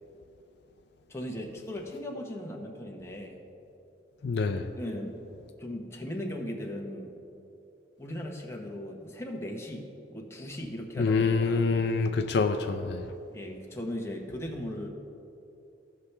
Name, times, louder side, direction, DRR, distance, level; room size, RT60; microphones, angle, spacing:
voice 1, 1.1-3.4 4.8-5.2 5.6-7.2 8.0-11.8 13.3-14.9, left 1 dB, 15° left, 0 dB, 1.0 m, -38 dB
voice 2, 4.2-4.7 11.0-13.0, left 4 dB, 65° left, 6 dB, 0.4 m, -26 dB
15.5 x 5.7 x 3.3 m, 2.8 s
head